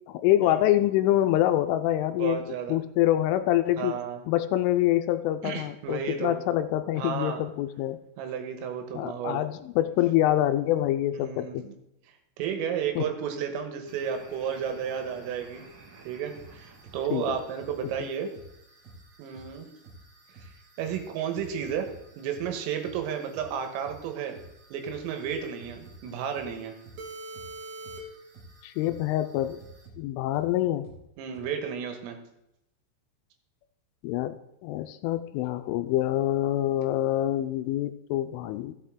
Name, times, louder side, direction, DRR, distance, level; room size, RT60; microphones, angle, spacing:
voice 1, 0.1-3.9 4.3-8.0 8.9-11.6 13.0-13.1 17.1-17.4 28.6-29.6 30.0-30.9 34.0-38.7, left 13 dB, 85° left, 10 dB, 3.0 m, -26 dB
voice 2, 2.2-2.8 3.8-4.2 5.4-6.4 7.0-7.4 8.2-9.4 11.1-11.7 12.4-15.6 16.1-18.3 19.2-19.7 20.8-21.9 22.2-24.4 24.7-26.8 31.2-32.2, right 8 dB, 90° right, 6 dB, 3.9 m, -32 dB
sound 1, 13.9-29.9, right 2 dB, 70° right, 1.7 m, -49 dB
sound 2, 16.3-16.5 16.8-18.0 18.3-18.5 18.8-19.0 19.3-19.5 19.8-20.0 20.3-20.5 20.8-21.0 21.3-22.0 22.3-22.5 22.8-23.0 23.3-23.5 23.8-24.0 24.3-24.5 24.8-26.0 26.3-26.5 26.8-27.0 27.3-27.5 27.8-28.0 28.3-28.5 28.8-29.0 29.3-30.0 30.3-30.5 30.8-31.0 31.3-31.4, right 2 dB, 45° right, 5.7 m, -48 dB
15.0 x 7.6 x 3.7 m, 0.86 s
omnidirectional pair, 5.8 m